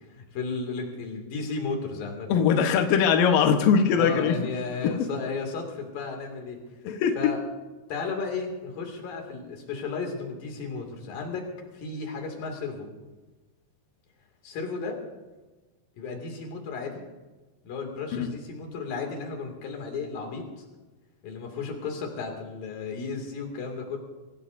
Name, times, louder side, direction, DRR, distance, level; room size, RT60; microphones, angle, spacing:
voice 1, 0.0-2.3 4.0-6.6 7.2-7.4 7.9-11.5 11.7-12.9 14.4-15.0 16.0-17.0 17.6-20.6 21.2-24.0, left 4 dB, 50° left, 2 dB, 3.6 m, -34 dB
voice 2, 2.3-4.4 6.8-7.3 18.2-18.3, left 7 dB, 90° left, 5 dB, 1.9 m, -21 dB
24.5 x 17.0 x 2.6 m, 1.2 s
omnidirectional pair, 5.7 m